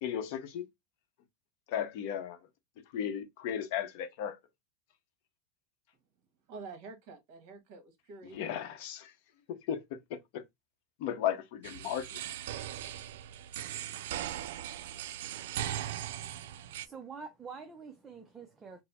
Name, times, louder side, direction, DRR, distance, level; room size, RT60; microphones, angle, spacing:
voice 1, 0.0-0.7 1.7-2.4 2.9-4.4 8.3-9.1 9.5-10.4 11.0-12.2, left 9 dB, 50° left, 0.8 m, -35 dB
voice 2, 6.5-8.6, right 4 dB, 45° right, 1.4 m, -48 dB
sound 1, 11.6-16.9, right 12 dB, 70° right, 0.4 m, -39 dB
voice 3, 16.4-18.8, right 5 dB, 10° right, 0.5 m, -47 dB
4.3 x 2.1 x 4.1 m
supercardioid pair, 175°, 0 cm